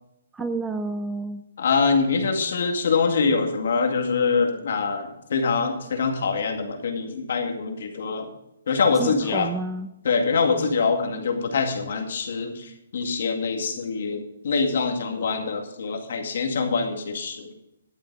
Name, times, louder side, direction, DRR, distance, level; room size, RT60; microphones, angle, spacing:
voice 1, 0.3-1.5 9.0-9.9, right 3 dB, 5° right, 9 dB, 0.4 m, -30 dB
voice 2, 1.6-8.3 8.7-9.5 10.0-17.5, left 4 dB, 55° left, 4 dB, 2.1 m, -24 dB
11.5 x 8.9 x 4.7 m, 0.86 s
hypercardioid pair, 170°, 0 cm